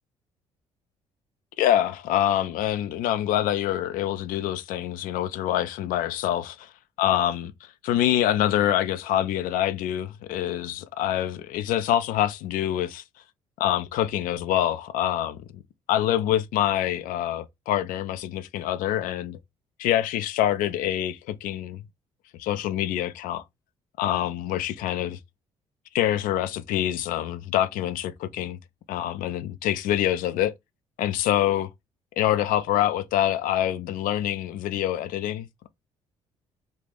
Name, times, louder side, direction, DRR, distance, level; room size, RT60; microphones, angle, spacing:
voice 1, 1.6-6.7 7.0-7.5 7.8-13.0 13.6-15.6 15.9-19.4 19.8-21.8 22.4-23.4 24.0-25.2 25.9-28.6 28.9-30.5 31.0-31.7 32.2-35.7, left 12 dB, 65° left, 0.4 m, -25 dB
2.7 x 2.4 x 3.4 m
hypercardioid pair, 50°, 15 cm